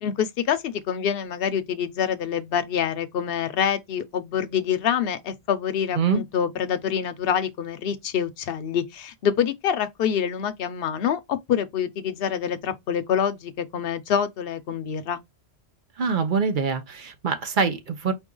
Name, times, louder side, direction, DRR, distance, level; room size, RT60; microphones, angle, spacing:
voice 1, 0.0-15.2, left 8 dB, 55° left, 0.8 m, -26 dB
voice 2, 16.0-18.1, right 5 dB, 45° right, 0.8 m, -24 dB
4.5 x 2.8 x 3.8 m
omnidirectional pair, 1.3 m